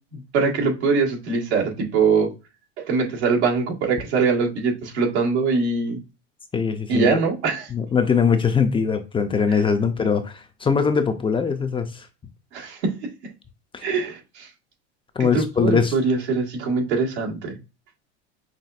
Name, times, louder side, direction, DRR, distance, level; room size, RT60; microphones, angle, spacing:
voice 1, 0.1-2.3 2.8-6.0 6.9-7.7 9.5-9.6 12.5-12.9 13.8-14.5 15.2-17.6, right 4 dB, 85° right, 1.7 m, -22 dB
voice 2, 6.5-7.2 7.7-12.1 13.7-13.8 15.2-15.9, left 6 dB, 15° left, 0.5 m, -21 dB
5.8 x 2.5 x 2.4 m
supercardioid pair, 110°, 33 cm